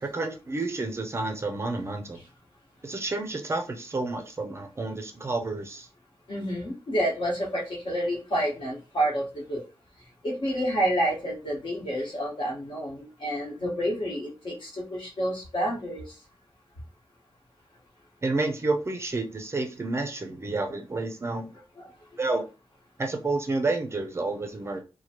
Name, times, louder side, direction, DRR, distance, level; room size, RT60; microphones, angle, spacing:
voice 1, 0.0-2.2 2.8-5.9 18.2-21.5 22.2-22.5 23.0-24.8, right 3 dB, 30° right, 0.4 m, -30 dB
voice 2, 6.3-9.6 10.2-16.1 21.8-21.9, equal, 60° left, 1.2 m, -29 dB
3.0 x 2.2 x 2.9 m
wide cardioid pair, 165°, 9 cm